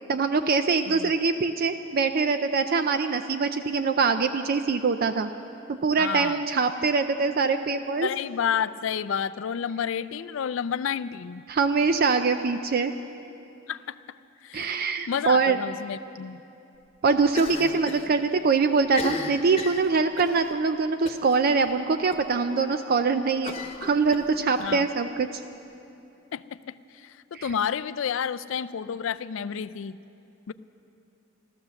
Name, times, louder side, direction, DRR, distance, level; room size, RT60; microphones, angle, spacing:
voice 1, 0.1-5.3 5.7-8.1 11.5-12.9 14.5-15.6 17.0-23.6 23.8-25.4 27.3-27.5, right 4 dB, 50° right, 9 dB, 0.4 m, -23 dB
voice 2, 6.0-6.4 8.0-11.5 13.7-14.0 14.4-16.4 24.6-24.9 26.3-30.0 30.5-30.6, left 7 dB, 70° left, 15 dB, 0.4 m, -30 dB
Cough, 17.3-18.1 18.4-18.5 18.8-20.4 21.1-21.4 21.7-21.8 22.1-22.2 23.4-24.7, left 3 dB, 30° left, 1.1 m, -35 dB
15.0 x 13.5 x 7.0 m, 2.7 s
head